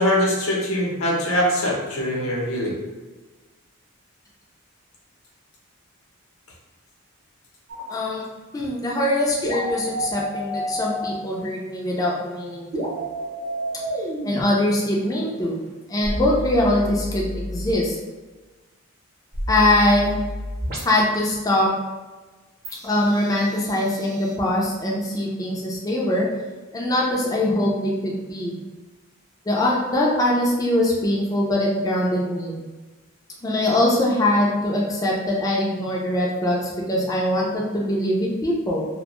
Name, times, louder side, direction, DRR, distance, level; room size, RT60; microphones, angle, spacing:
voice 1, 0.0-2.7, left 1 dB, 80° left, -3 dB, 0.7 m, -22 dB
sound 1, 7.7-7.8 9.4-11.1 12.7-14.4 16.0-17.7 19.3-21.0 22.6-24.3, equal, 45° right, 0.8 m, -30 dB
voice 2, 7.9-8.2 8.5-12.9 14.2-15.6 15.9-18.0 19.5-20.2 20.8-21.7 22.8-26.3 26.7-28.6 29.5-32.6 33.4-38.9, left 1 dB, 15° left, -3 dB, 0.4 m, -22 dB
2.5 x 2.1 x 2.9 m, 1.2 s
head